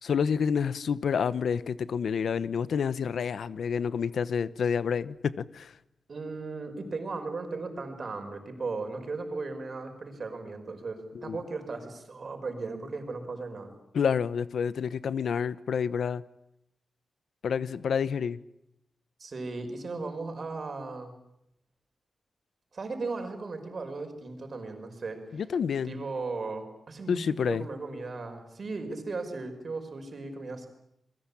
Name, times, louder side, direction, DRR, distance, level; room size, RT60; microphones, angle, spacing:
voice 1, 0.0-5.7 11.1-11.4 13.9-16.2 17.4-18.4 25.3-25.9 27.1-27.6, left 6 dB, 75° left, 1.0 m, -28 dB
voice 2, 6.1-13.7 19.2-21.1 22.7-25.4 25.8-30.7, right 3 dB, 40° right, 5.4 m, -36 dB
29.0 x 22.5 x 8.6 m
wide cardioid pair, 155°, 0 cm